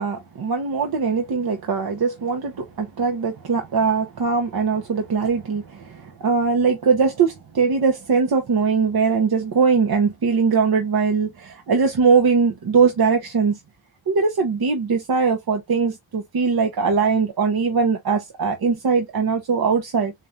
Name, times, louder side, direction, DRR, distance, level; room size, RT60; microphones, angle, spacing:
voice 1, 0.0-13.6 14.1-20.1, right 5 dB, 85° right, 0.8 m, -21 dB
3.7 x 3.1 x 2.6 m
cardioid pair, 50°, 36 cm